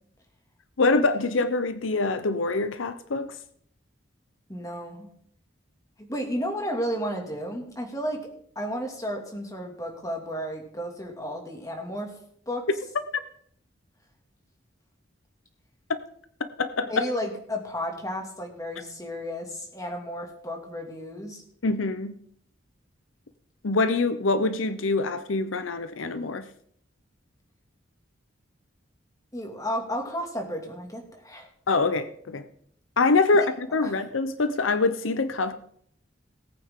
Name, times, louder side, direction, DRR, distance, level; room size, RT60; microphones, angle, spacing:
voice 1, 0.8-3.3 16.6-17.0 21.6-22.1 23.6-26.4 31.7-32.4 33.0-35.5, left 3 dB, 85° left, 12 dB, 0.8 m, -24 dB
voice 2, 4.5-5.1 6.0-8.3 8.6-12.1 12.5-12.7 16.9-21.4 29.3-31.5 33.3-33.5 33.8-34.0, equal, 15° left, 2 dB, 2.3 m, -33 dB
18.5 x 8.7 x 3.8 m, 0.65 s
head